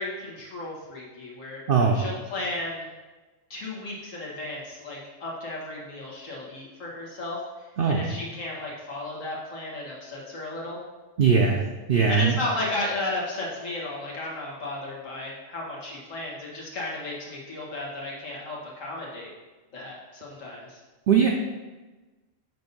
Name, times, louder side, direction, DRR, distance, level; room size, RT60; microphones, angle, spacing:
voice 1, 0.0-1.6 1.9-2.9 3.5-10.8 12.1-19.3 19.7-20.8, left 2 dB, 90° left, -4 dB, 1.7 m, -34 dB
voice 2, 1.7-2.0 7.8-8.1 11.2-12.4 21.1-21.3, right 6 dB, 55° right, 0 dB, 0.7 m, -20 dB
7.7 x 2.6 x 5.3 m, 1.2 s
omnidirectional pair, 1.3 m